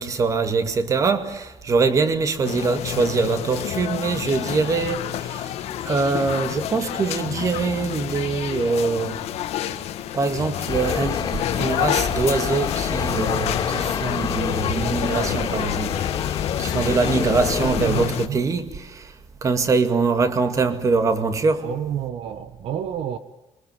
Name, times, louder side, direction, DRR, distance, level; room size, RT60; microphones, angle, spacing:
voice 1, 0.0-5.0 5.9-9.2 10.1-11.2 11.6-15.9 16.6-18.7 19.4-21.7, right 4 dB, 30° right, 2.2 m, -23 dB
sound 1, 2.4-18.3, left 12 dB, 80° left, 1.7 m, -29 dB
sound 2, 10.7-18.1, left 7 dB, 40° left, 2.9 m, -28 dB
voice 2, 17.8-18.5 21.6-23.2, right 10 dB, 65° right, 1.4 m, -29 dB
27.5 x 23.5 x 7.8 m
cardioid pair, 170°, 11 cm